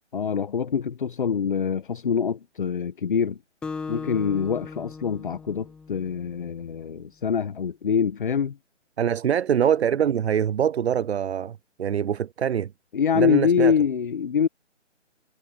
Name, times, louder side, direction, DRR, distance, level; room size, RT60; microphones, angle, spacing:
voice 1, 0.1-3.4 3.9-8.6 12.9-14.5, left 7 dB, 45° left, 1.1 m, -25 dB
Acoustic guitar, 3.6-6.4, left 5 dB, 5° left, 1.6 m, -37 dB
voice 2, 9.0-12.7 13.1-13.7, right 9 dB, 60° right, 0.5 m, -24 dB
hypercardioid pair, 170°, 37 cm